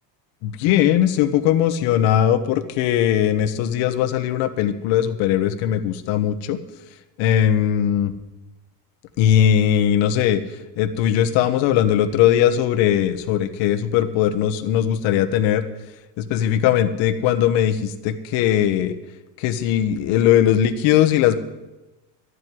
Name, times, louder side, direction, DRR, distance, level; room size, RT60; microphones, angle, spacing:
voice 1, 0.4-6.6 7.2-8.1 9.2-10.4 10.8-15.6 16.3-18.9 19.4-21.3, left 10 dB, 70° left, 10 dB, 1.4 m, -19 dB
12.0 x 8.0 x 9.7 m, 1.1 s
cardioid pair, 135°, 48 cm